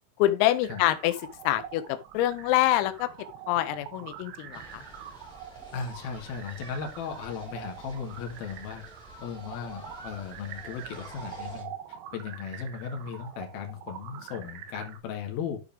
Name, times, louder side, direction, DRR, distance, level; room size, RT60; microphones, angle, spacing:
voice 1, 0.2-1.1 1.4-3.1 3.5-4.8, left 14 dB, 90° left, 3.4 m, -25 dB
sound 1, 0.6-15.0, right 10 dB, 75° right, 2.9 m, -45 dB
sound 2, 4.5-11.6, equal, ahead, 2.4 m, -49 dB
voice 2, 5.7-8.8 9.2-11.7 12.1-15.6, left 6 dB, 60° left, 2.9 m, -36 dB
12.0 x 5.0 x 3.4 m
omnidirectional pair, 5.9 m